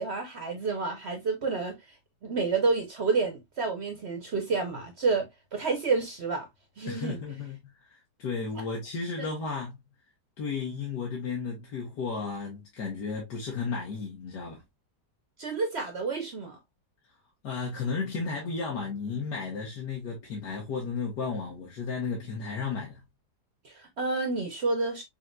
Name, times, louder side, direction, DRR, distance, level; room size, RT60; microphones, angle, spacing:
voice 1, 0.0-1.8 2.2-6.5 6.8-7.2 8.6-8.7 9.2-9.3 15.4-16.6 23.6-25.0, right 4 dB, 50° right, 0.8 m, -29 dB
voice 2, 6.9-9.8 10.4-14.6 17.4-23.0, left 4 dB, 85° left, 1.8 m, -34 dB
5.6 x 2.9 x 2.3 m
omnidirectional pair, 1.8 m